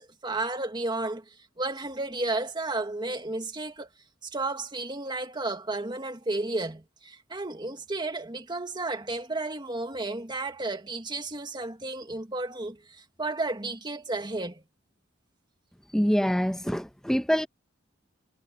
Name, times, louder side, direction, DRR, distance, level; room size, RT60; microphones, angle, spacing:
voice 1, 0.0-3.9 4.2-14.6, right 2 dB, 20° right, 1.7 m, -33 dB
voice 2, 15.9-17.5, equal, 5° left, 0.9 m, -25 dB
head